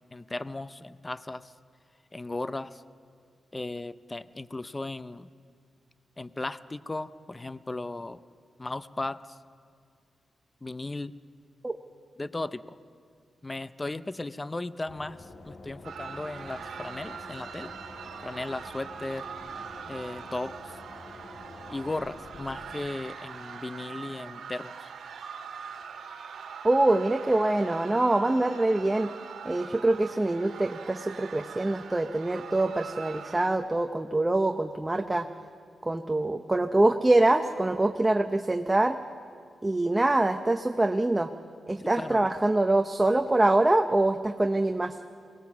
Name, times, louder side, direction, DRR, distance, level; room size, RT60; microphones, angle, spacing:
voice 1, 0.1-1.5 2.1-2.8 3.5-5.3 6.2-8.2 8.6-9.4 10.6-11.1 12.2-12.8 13.4-17.7 18.2-19.3 19.9-20.8 21.7-24.9 41.8-42.3, left 2 dB, 20° left, 15 dB, 0.5 m, -36 dB
sound 1, 14.9-22.8, left 2 dB, 55° left, 1.7 m, -48 dB
sound 2, 15.8-33.5, right 6 dB, 85° right, 1.6 m, -42 dB
voice 2, 26.6-29.1 29.4-35.3 35.8-39.0 39.6-41.3 41.7-45.0, right 2 dB, 15° right, 6 dB, 0.7 m, -24 dB
23.0 x 18.0 x 7.1 m, 2.3 s
wide cardioid pair, 105°, 0 cm